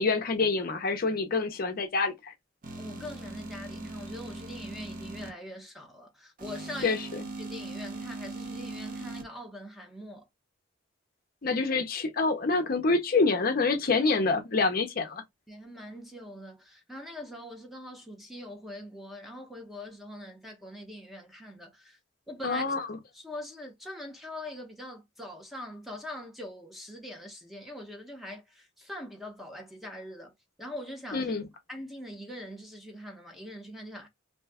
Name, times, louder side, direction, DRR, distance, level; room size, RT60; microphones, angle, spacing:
voice 1, 0.0-2.3 6.8-7.2 11.4-15.2 22.4-22.8 31.1-31.5, left 3 dB, 45° left, 0.5 m, -27 dB
sound 1, 2.6-5.3 6.4-9.2, right 2 dB, 45° right, 0.6 m, -40 dB
voice 2, 2.8-7.0 7.4-10.3 15.5-22.0 22.3-22.6 23.1-30.3 30.6-31.3 31.7-34.1, left 1 dB, ahead, 0.7 m, -42 dB
2.7 x 2.2 x 3.4 m
head